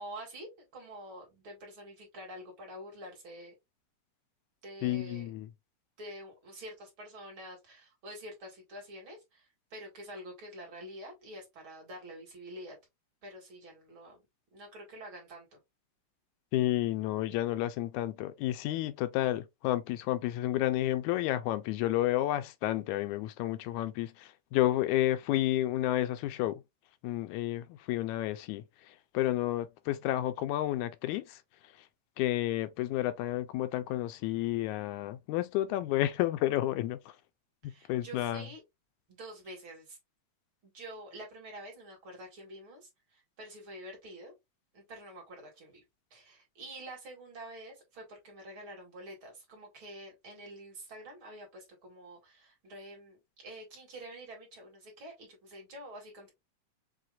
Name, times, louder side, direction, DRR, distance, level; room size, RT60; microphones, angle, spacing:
voice 1, 0.0-3.5 4.6-5.3 6.0-12.8 13.2-14.2 14.5-15.6 37.6-38.6 39.1-40.0 40.6-44.3 44.7-45.8 46.1-56.3, right 1 dB, 45° right, 2.4 m, -47 dB
voice 2, 4.8-5.5 16.5-26.6 27.0-31.4 32.2-37.0 37.6-38.4, left 14 dB, 85° left, 2.0 m, -31 dB
5.9 x 2.9 x 2.3 m
omnidirectional pair, 3.3 m